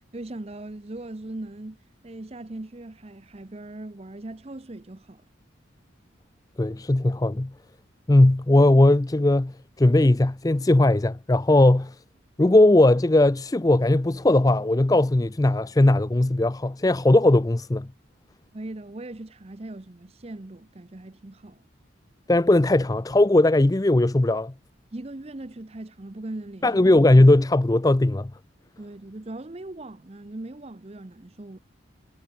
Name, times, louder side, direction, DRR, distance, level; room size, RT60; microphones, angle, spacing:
voice 1, 0.0-5.2 18.5-21.7 24.9-26.8 28.8-31.6, right 2 dB, 30° right, 0.7 m, -39 dB
voice 2, 6.6-7.5 8.1-11.9 12.4-17.9 22.3-24.5 26.6-28.3, left 1 dB, 20° left, 0.4 m, -19 dB
head